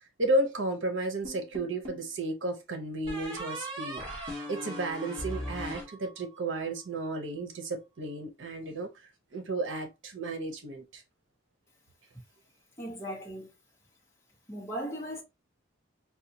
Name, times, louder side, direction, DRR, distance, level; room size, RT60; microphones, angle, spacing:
voice 1, 0.2-4.0 4.5-8.9 9.3-11.0, right 2 dB, 75° right, 0.9 m, -33 dB
sound 1, 1.2-2.1 3.1-6.5, equal, 25° right, 1.4 m, -39 dB
voice 2, 12.8-13.5 14.5-15.2, equal, 15° left, 0.8 m, -37 dB
4.1 x 2.3 x 2.7 m
head